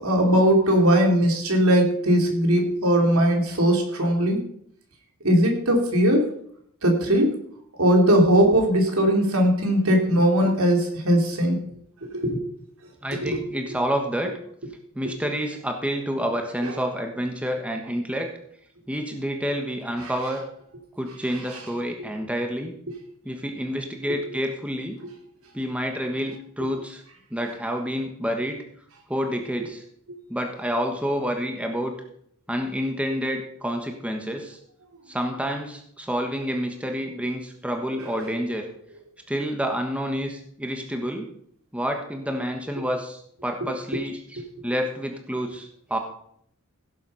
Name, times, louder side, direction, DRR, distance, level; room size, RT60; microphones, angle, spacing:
voice 1, 0.0-4.4 5.2-6.2 6.8-7.3 7.8-11.6 12.1-12.4 13.1-13.4 16.6-16.7 20.0-20.1, equal, 80° right, 2 dB, 3.3 m, -19 dB
voice 2, 13.0-14.3 14.9-18.3 18.9-20.4 21.0-22.7 23.2-25.0 25.5-27.0 27.3-28.6 29.1-29.8 30.3-31.9 32.5-34.6 35.1-38.7 39.3-41.3 41.7-46.0, equal, 5° right, 3 dB, 1.3 m, -28 dB
16.5 x 7.5 x 5.7 m, 0.68 s
head